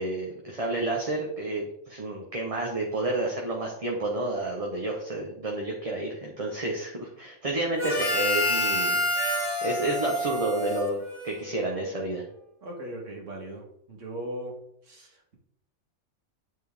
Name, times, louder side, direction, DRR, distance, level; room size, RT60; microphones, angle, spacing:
voice 1, 0.0-9.0 9.6-12.2, right 2 dB, 30° right, -1 dB, 1.0 m, -30 dB
Harmonica, 7.8-11.6, left 1 dB, 20° left, 1.7 m, -28 dB
voice 2, 12.6-14.6 14.9-15.4, right 1 dB, 70° right, 1 dB, 1.9 m, -38 dB
9.2 x 4.4 x 3.5 m, 0.73 s
omnidirectional pair, 1.4 m